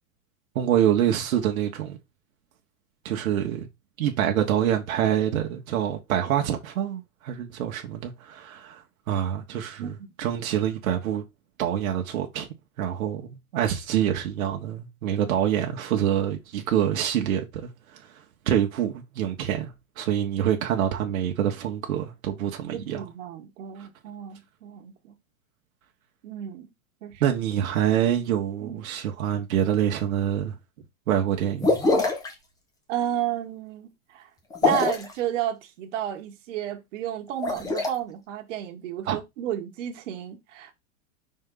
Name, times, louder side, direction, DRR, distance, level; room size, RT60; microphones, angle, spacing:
voice 1, 0.5-2.0 3.0-3.7 4.0-11.2 11.6-12.5 12.8-23.0 23.8-23.9 27.2-30.6 31.1-31.9 39.0-39.2, right 10 dB, 80° right, 1.6 m, -26 dB
voice 2, 22.7-25.1 26.2-26.7 27.0-27.2 28.6-28.8 32.9-34.3 34.6-40.7, right 11 dB, 60° right, 1.7 m, -32 dB
sound 1, 31.6-32.3 34.5-35.1 37.3-37.9, left 3 dB, 10° left, 1.0 m, -23 dB
5.4 x 4.4 x 4.0 m
supercardioid pair, 160°, 41 cm